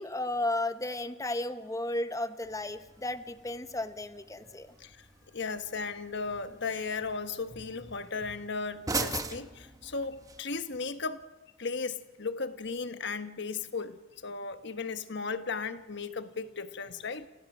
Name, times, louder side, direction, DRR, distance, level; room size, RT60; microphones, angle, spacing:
voice 1, 0.0-4.7, left 1 dB, 15° left, 1.0 m, -34 dB
sound 1, 2.4-10.4, right 3 dB, 20° right, 1.2 m, -41 dB
voice 2, 5.3-11.2 11.6-17.3, left 4 dB, 65° left, 1.3 m, -36 dB
29.0 x 29.0 x 6.1 m
head